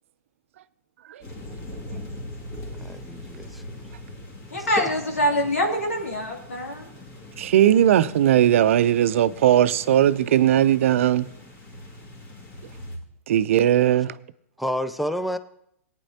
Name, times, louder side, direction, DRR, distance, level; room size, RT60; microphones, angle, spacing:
sound 1, 1.2-13.0, left 1 dB, 35° left, 2.4 m, -41 dB
voice 1, 2.8-3.6 4.5-4.9 14.6-15.4, equal, ahead, 0.5 m, -29 dB
voice 2, 4.5-6.9, equal, 90° left, 2.6 m, -25 dB
voice 3, 7.4-11.3 13.3-14.1, right 11 dB, 65° right, 0.5 m, -18 dB
18.5 x 9.1 x 2.8 m
hypercardioid pair, 115°, 8 cm